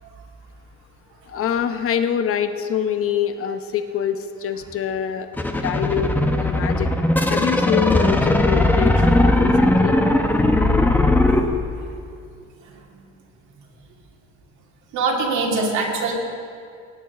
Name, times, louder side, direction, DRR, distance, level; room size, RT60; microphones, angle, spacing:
voice 1, 1.3-6.1 6.4-6.9 7.3-10.0, left 8 dB, 45° left, 9 dB, 0.9 m, -25 dB
sound 1, 5.4-11.4, left 1 dB, 5° left, 0.8 m, -18 dB
voice 2, 14.9-16.1, right 3 dB, 70° right, -1 dB, 2.3 m, -22 dB
18.0 x 8.4 x 4.2 m, 2.4 s
cardioid pair, 110°, 31 cm